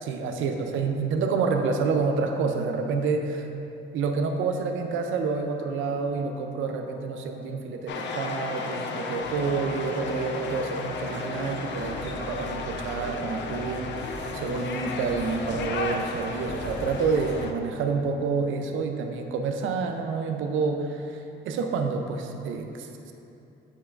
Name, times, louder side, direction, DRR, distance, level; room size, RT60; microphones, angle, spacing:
voice 1, 0.0-3.5 3.9-23.1, right 4 dB, 80° right, 4 dB, 0.5 m, -28 dB
sound 1, 4.4-17.4, right 1 dB, 20° right, 1.3 m, -43 dB
sound 2, 7.9-17.5, left 4 dB, 65° left, 0.5 m, -34 dB
8.7 x 4.6 x 2.5 m, 2.8 s
cardioid pair, 90°, 20 cm